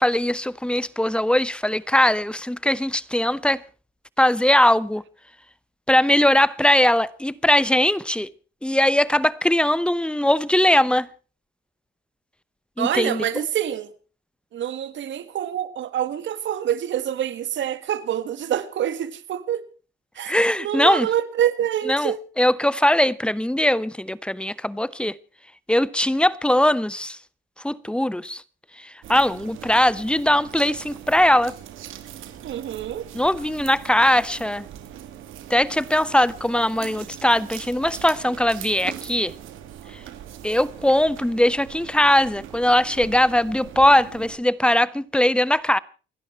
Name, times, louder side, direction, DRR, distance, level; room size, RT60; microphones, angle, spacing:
voice 1, 0.0-3.6 4.2-5.0 5.9-8.3 8.6-11.1 12.8-13.2 20.3-21.1 21.9-25.1 25.7-27.2 27.6-28.4 28.8-31.6 33.1-34.7 35.5-39.3 40.4-45.8, left 1 dB, 5° left, 0.9 m, -20 dB
voice 2, 12.8-13.9 14.5-19.6 20.2-22.2 32.4-33.1, right 10 dB, 70° right, 1.9 m, -26 dB
sound 1, 29.0-44.4, right 10 dB, 85° right, 2.7 m, -41 dB
29.0 x 10.5 x 4.4 m
cardioid pair, 90°, 20 cm